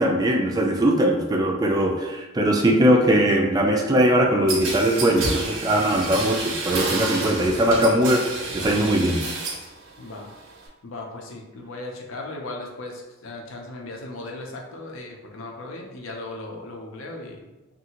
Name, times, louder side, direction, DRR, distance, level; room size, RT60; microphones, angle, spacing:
voice 1, 0.0-8.2 8.5-9.2, right 1 dB, 20° right, 1 dB, 0.3 m, -20 dB
sound 1, 4.5-9.7 10.0-10.7, right 3 dB, 65° right, 0.6 m, -30 dB
voice 2, 10.0-10.3 10.8-17.5, left 2 dB, 75° left, 1 dB, 0.6 m, -37 dB
2.7 x 2.5 x 2.8 m, 1.1 s
head